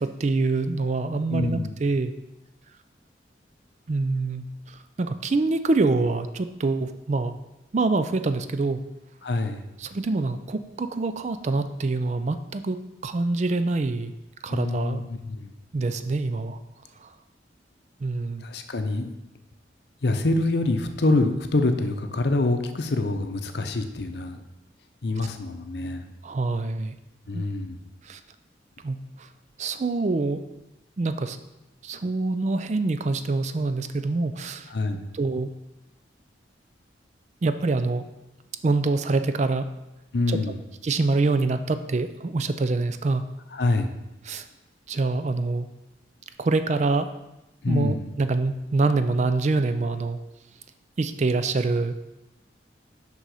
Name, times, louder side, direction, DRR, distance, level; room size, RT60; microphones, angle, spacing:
voice 1, 0.0-2.1 3.9-7.3 7.7-8.8 9.8-14.1 14.4-15.0 15.7-16.6 17.0-17.1 18.0-18.5 26.2-27.0 27.3-27.4 28.0-28.2 28.8-29.3 29.6-30.5 31.0-31.4 31.8-34.7 35.1-35.5 37.4-38.0 38.6-39.7 40.3-40.4 40.8-43.3 44.2-44.5 44.9-45.7 46.4-47.1 47.7-50.2 51.0-51.9, right 3 dB, 40° right, 10 dB, 0.4 m, -25 dB
voice 2, 1.3-1.7 9.2-9.6 14.5-15.5 18.4-19.2 20.0-24.4 25.0-26.1 27.3-27.8 34.7-35.1 40.1-40.6 43.5-43.9 47.6-48.1, left 2 dB, 60° left, 7 dB, 0.7 m, -26 dB
6.4 x 5.5 x 4.8 m, 0.95 s
head